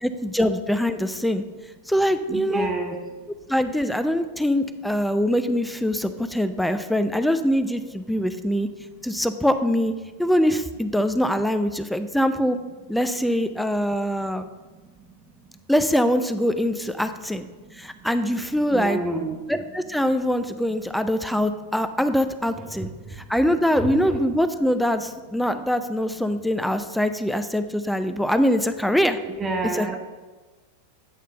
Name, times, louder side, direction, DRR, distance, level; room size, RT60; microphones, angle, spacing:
voice 1, 0.0-1.4 1.9-2.7 3.5-8.7 9.0-9.9 10.2-12.6 12.9-14.4 15.7-17.5 17.7-19.0 19.5-22.9 23.2-29.2 29.7-30.0, equal, ahead, 10 dB, 0.4 m, -23 dB
voice 2, 2.3-3.0 17.7-17.8 18.7-19.4 20.7-20.8 22.6-22.9 23.7-24.2 29.2-30.0, right 3 dB, 15° right, 1 dB, 0.9 m, -29 dB
8.8 x 3.3 x 6.5 m, 1.3 s
figure-of-eight pair, 90°, 0 cm